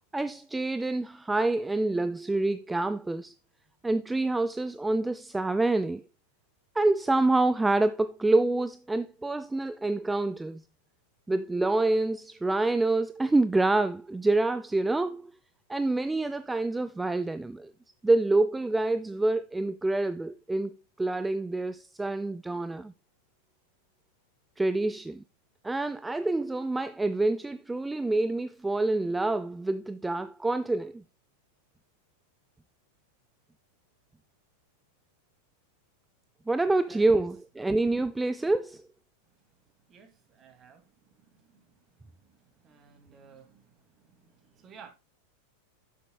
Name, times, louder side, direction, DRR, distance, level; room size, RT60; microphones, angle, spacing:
voice 1, 0.1-3.3 3.8-6.0 6.7-10.6 11.3-15.3 15.7-17.7 18.0-22.9 24.6-25.2 25.6-31.0 36.5-38.8, right 2 dB, 10° right, 0.4 m, -27 dB
voice 2, 40.4-40.8 42.6-43.6 44.6-44.9, right 6 dB, 30° right, 2.3 m, -52 dB
9.2 x 7.5 x 2.2 m
hypercardioid pair, 100°, 0 cm